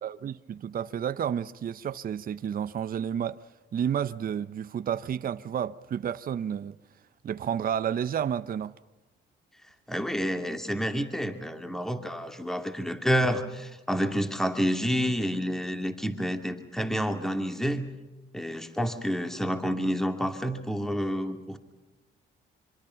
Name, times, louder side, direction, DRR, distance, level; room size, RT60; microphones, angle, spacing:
voice 1, 0.0-3.4 3.7-6.8 7.2-8.7, right 8 dB, 45° right, 0.7 m, -31 dB
voice 2, 9.9-17.9 18.3-21.6, equal, ahead, 2.5 m, -29 dB
26.0 x 24.5 x 5.8 m
cardioid pair, 90°, 20 cm